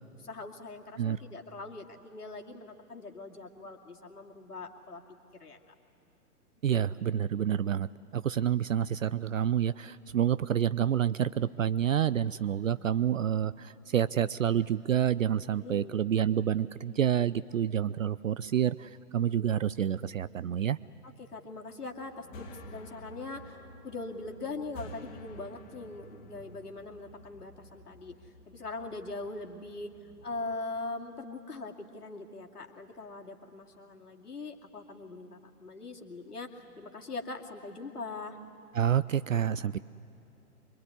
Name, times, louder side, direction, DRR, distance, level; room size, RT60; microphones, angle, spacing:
voice 1, 0.2-5.0 5.4-5.6 6.7-7.1 15.5-16.0 21.0-28.2 28.5-29.9 30.2-38.4, left 3 dB, 75° left, 1 dB, 2.5 m, -41 dB
voice 2, 6.6-20.8 38.7-39.8, right 9 dB, 55° right, 18 dB, 0.5 m, -28 dB
sound 1, 21.9-30.5, left 1 dB, 20° left, 1.8 m, -51 dB
25.0 x 23.0 x 9.6 m, 3.0 s
figure-of-eight pair, 125°, 46 cm